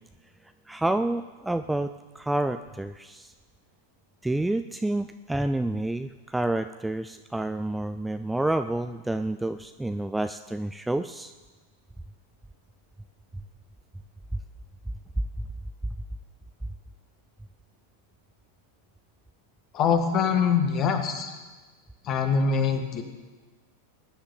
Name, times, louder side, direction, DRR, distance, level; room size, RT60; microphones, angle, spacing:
voice 1, 0.7-3.3 4.2-11.3, right 1 dB, 5° right, 9 dB, 0.4 m, -29 dB
voice 2, 19.7-21.3 22.0-23.0, left 6 dB, 35° left, 6 dB, 1.7 m, -24 dB
20.0 x 10.0 x 4.0 m, 1.3 s
figure-of-eight pair, 90°, 0 cm